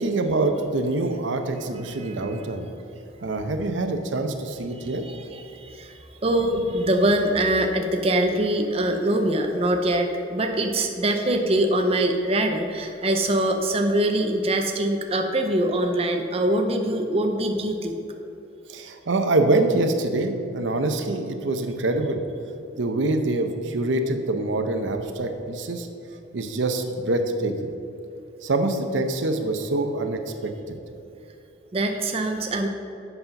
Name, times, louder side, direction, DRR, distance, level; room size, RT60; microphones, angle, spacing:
voice 1, 0.0-2.7 3.2-5.0 6.5-6.6 18.7-22.2 22.8-25.9 26.3-27.5 28.4-30.8, right 2 dB, 75° right, 6 dB, 0.7 m, -25 dB
voice 2, 6.2-17.9 31.7-32.7, right 1 dB, 30° right, 4 dB, 0.6 m, -23 dB
7.9 x 5.6 x 5.8 m, 2.9 s
head